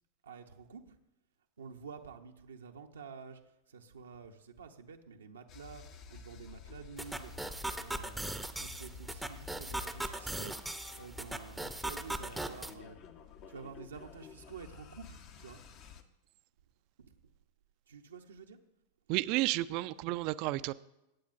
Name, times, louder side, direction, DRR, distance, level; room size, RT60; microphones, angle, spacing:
voice 1, 0.2-0.9 1.6-3.4 3.7-5.8 6.1-7.3 7.8-10.5 10.9-13.0 13.5-15.6 17.0-17.1 17.9-18.6, right 5 dB, 85° right, 3 dB, 0.8 m, -49 dB
sound 1, 5.5-16.0, left 6 dB, 50° left, 0.8 m, -52 dB
sound 2, 7.0-12.7, right 2 dB, 5° right, 0.6 m, -39 dB
voice 2, 19.1-20.7, right 18 dB, 50° right, 16 dB, 0.4 m, -32 dB
15.5 x 8.7 x 2.6 m, 0.91 s
hypercardioid pair, 100°, 0 cm